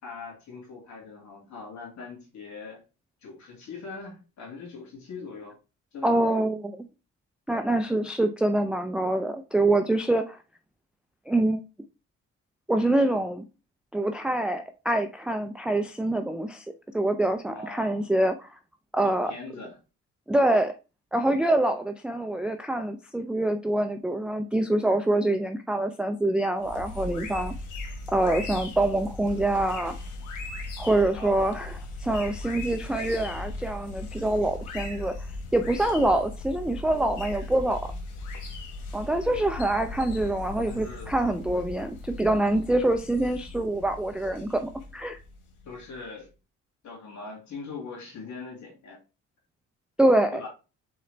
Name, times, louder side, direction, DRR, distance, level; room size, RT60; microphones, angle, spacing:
voice 1, 0.0-2.8 3.2-5.6 5.9-6.4 12.8-13.2 17.5-18.1 19.0-19.8 31.1-31.7 40.7-41.1 45.7-46.3 46.8-49.0 50.3-50.5, left 4 dB, 70° left, 2.2 m, -41 dB
voice 2, 6.0-6.7 7.5-10.4 11.3-11.6 12.7-13.4 13.9-16.7 16.9-18.5 18.9-19.3 20.3-20.7 21.1-27.5 28.1-30.0 30.8-35.2 35.5-37.9 38.9-45.2 50.0-50.4, right 1 dB, 5° right, 0.3 m, -25 dB
sound 1, 26.6-46.0, left 2 dB, 90° left, 1.2 m, -38 dB
4.3 x 3.8 x 3.2 m
cardioid pair, 90°, 30 cm